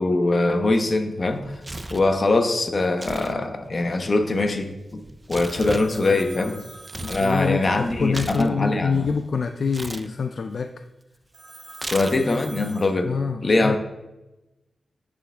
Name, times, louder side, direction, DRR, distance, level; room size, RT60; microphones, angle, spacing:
voice 1, 0.0-1.6 1.9-5.0 5.3-6.5 7.1-9.1 11.9-13.1 13.4-13.8, left 2 dB, 40° left, 5 dB, 0.9 m, -22 dB
Tearing, 1.3-2.1 2.9-3.4 3.6-7.3 7.7-9.2 9.7-10.1 11.7-12.4, right 2 dB, 20° right, 0.4 m, -36 dB
Telephone, 5.3-8.4 11.3-12.8, right 2 dB, 40° right, 2.4 m, -45 dB
voice 2, 5.8-6.6 7.0-10.7 13.0-13.8, left 5 dB, 55° left, 7 dB, 0.3 m, -26 dB
8.8 x 6.9 x 3.4 m, 1.0 s
wide cardioid pair, 105°, 0 cm